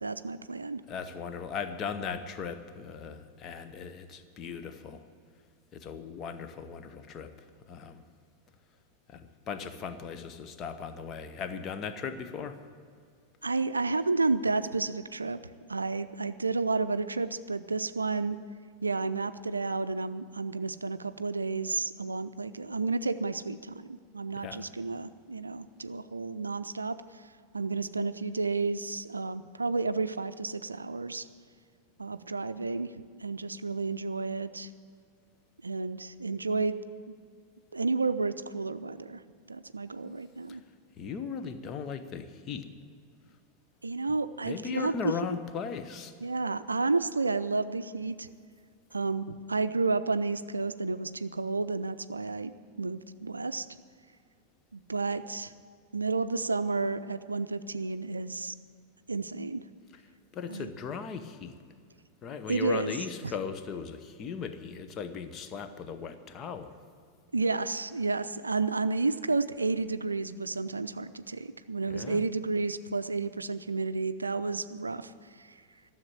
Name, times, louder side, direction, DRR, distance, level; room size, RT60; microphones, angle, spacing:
voice 1, 0.0-0.8 13.4-15.4 15.7-18.4 18.8-27.0 27.5-31.3 32.0-34.7 35.6-36.8 37.7-39.2 39.5-40.6 43.8-45.1 46.2-48.3 48.9-52.5 52.8-53.7 54.7-55.5 55.9-58.5 59.1-59.6 60.5-60.7 62.5-62.9 63.2-63.3 67.3-75.1 75.4-75.5, right 3 dB, 80° right, 12 dB, 0.5 m, -31 dB
voice 2, 0.9-5.0 5.7-7.3 7.7-8.0 9.1-12.6 24.4-24.6 40.5-40.6 41.0-42.7 44.4-46.1 60.3-61.6 62.2-66.8 71.9-72.2, left 6 dB, 30° left, 9 dB, 0.9 m, -38 dB
13.5 x 7.3 x 10.0 m, 2.1 s
figure-of-eight pair, 90°, 0 cm